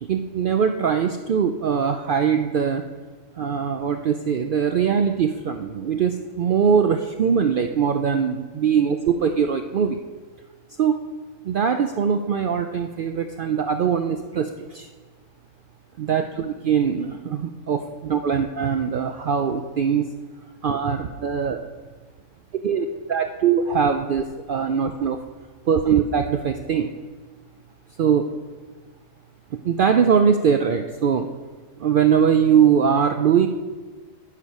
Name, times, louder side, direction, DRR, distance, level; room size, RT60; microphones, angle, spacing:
voice 1, 0.0-2.8 3.4-10.0 10.8-11.0 11.4-14.9 16.0-20.1 20.6-21.6 22.6-25.2 25.7-26.9 28.0-28.3 29.5-31.3 31.8-33.5, right 7 dB, 65° right, 6 dB, 0.5 m, -21 dB
11.0 x 6.4 x 5.4 m, 1.4 s
omnidirectional pair, 1.4 m